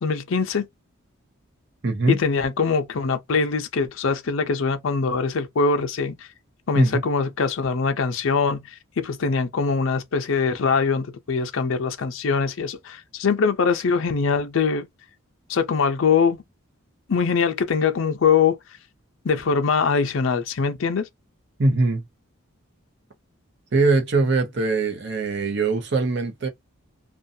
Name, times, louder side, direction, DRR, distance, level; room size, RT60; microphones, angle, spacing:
voice 1, 0.0-0.7 2.1-6.1 6.7-8.7 9.0-14.9 15.5-16.4 17.1-18.6 19.2-21.1, left 5 dB, 65° left, 0.5 m, -22 dB
voice 2, 1.8-2.2 6.8-7.0 21.6-22.0 23.7-26.5, right 3 dB, 55° right, 0.7 m, -21 dB
2.5 x 2.2 x 2.6 m
head